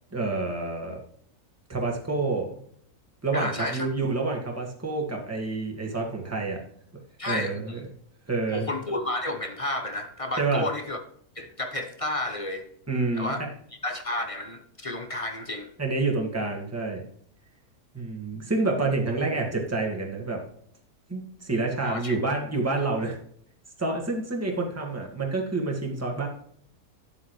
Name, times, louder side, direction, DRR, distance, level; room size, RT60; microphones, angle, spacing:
voice 1, 0.1-1.0 1.7-2.5 3.2-6.6 7.3-7.8 8.3-8.7 10.4-10.6 12.9-13.3 15.8-17.0 17.9-20.4 21.1-23.2 23.8-26.3, right 3 dB, 10° right, 0 dB, 1.7 m, -28 dB
voice 2, 3.3-3.9 7.2-7.8 8.5-11.0 11.4-12.7 13.2-13.4 13.8-15.7 21.8-22.2, left 1 dB, 30° left, 6 dB, 0.7 m, -31 dB
9.9 x 7.4 x 3.1 m, 0.64 s
omnidirectional pair, 1.6 m